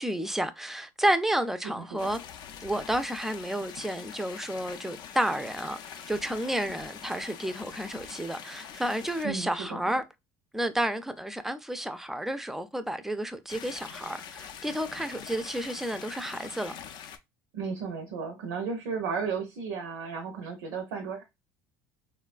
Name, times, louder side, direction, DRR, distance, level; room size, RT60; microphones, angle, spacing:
voice 1, 0.0-2.2 2.6-10.0 10.5-16.7, right 1 dB, 5° right, 0.3 m, -31 dB
voice 2, 1.6-2.2 9.2-9.8 17.5-21.2, right 5 dB, 85° right, 0.5 m, -34 dB
sound 1, 2.0-9.2 13.5-17.2, left 8 dB, 65° left, 0.4 m, -44 dB
3.0 x 2.2 x 2.4 m
supercardioid pair, 95°, 8 cm